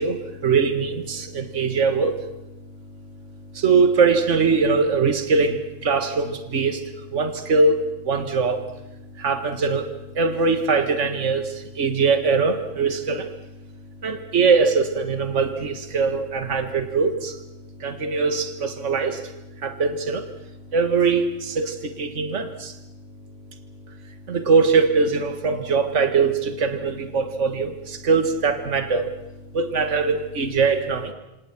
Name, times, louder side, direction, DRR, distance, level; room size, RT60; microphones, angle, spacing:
voice 1, 0.0-2.2 3.5-8.7 9.2-9.9 10.1-13.3 14.0-17.4 17.8-19.2 19.6-20.3 20.7-22.8 24.3-29.1 29.5-31.1, right 4 dB, 65° right, 9 dB, 1.9 m, -22 dB
27.5 x 26.5 x 6.0 m, 0.96 s
omnidirectional pair, 1.3 m